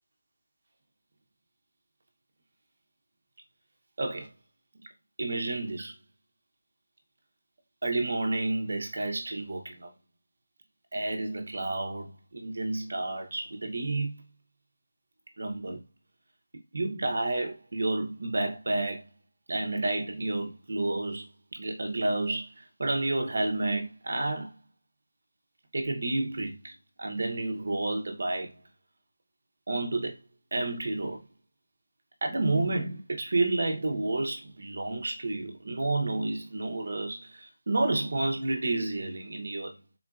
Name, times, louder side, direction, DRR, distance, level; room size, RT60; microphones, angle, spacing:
voice 1, 4.0-4.3 5.2-5.9 7.8-9.9 10.9-14.2 15.4-15.8 16.7-19.1 19.5-24.5 25.7-26.7 27.0-28.6 29.7-30.2 30.5-31.2 32.2-39.8, right 2 dB, 40° right, 0.7 m, -30 dB
3.7 x 2.6 x 2.3 m
figure-of-eight pair, 180°, 0 cm